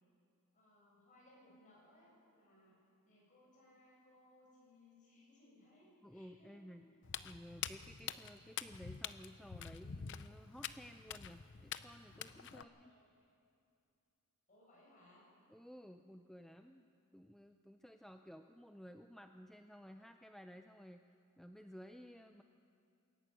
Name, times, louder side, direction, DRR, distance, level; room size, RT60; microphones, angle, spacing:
voice 1, 0.5-6.8 12.5-13.3 14.5-15.3, left 1 dB, 35° left, -4 dB, 7.3 m, -66 dB
voice 2, 6.0-6.9 7.2-12.9 15.5-16.9 17.1-21.0 21.4-22.4, equal, ahead, 6 dB, 0.5 m, -55 dB
Walk footsteps, 7.0-12.6, left 8 dB, 55° left, 0.6 m, -46 dB
22.0 x 13.5 x 9.2 m, 2.5 s
head